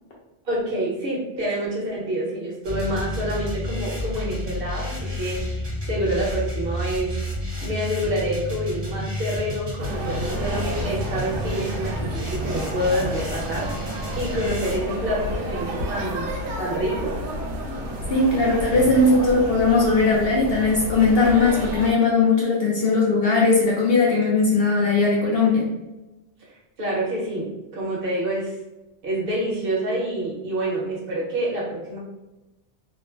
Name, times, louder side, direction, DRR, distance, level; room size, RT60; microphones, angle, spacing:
voice 1, 0.4-7.2 7.6-16.3 16.6-17.1 26.8-28.5 29.0-32.0, right 1 dB, 55° right, -5 dB, 1.1 m, -27 dB
sound 1, 2.6-14.8, equal, 25° right, 0.7 m, -31 dB
sound 2, 9.8-21.9, equal, 85° right, 0.9 m, -31 dB
voice 2, 18.1-25.7, left 3 dB, 65° left, -4 dB, 0.7 m, -19 dB
3.1 x 2.0 x 2.4 m, 1.0 s
omnidirectional pair, 1.2 m